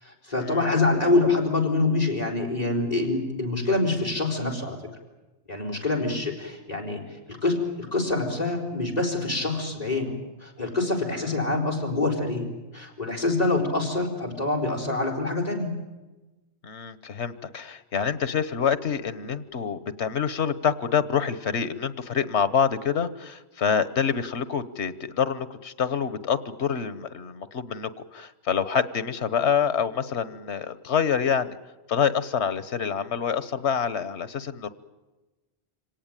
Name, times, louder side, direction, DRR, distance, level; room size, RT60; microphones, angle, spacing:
voice 1, 0.0-4.8 5.5-7.0 7.3-10.2 10.4-12.5 12.7-15.8, left 2 dB, 35° left, 0 dB, 4.6 m, -25 dB
voice 2, 16.6-31.6 31.9-34.7, left 7 dB, 85° left, 15 dB, 1.4 m, -26 dB
26.5 x 18.0 x 9.0 m, 1.1 s
omnidirectional pair, 1.1 m